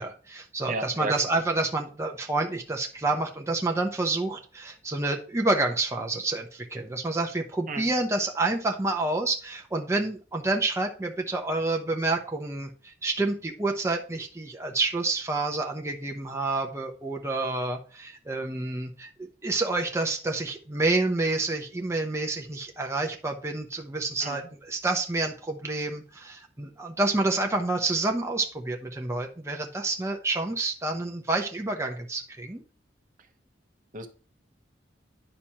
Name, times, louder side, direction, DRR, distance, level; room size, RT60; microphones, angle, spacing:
voice 1, 0.0-19.1 19.4-32.6, right 2 dB, 15° right, 2 dB, 0.7 m, -28 dB
voice 2, 0.7-1.3 7.7-7.9 24.2-24.4 33.9-34.1, right 3 dB, 45° right, 7 dB, 0.9 m, -33 dB
9.9 x 5.9 x 2.9 m, 0.38 s
head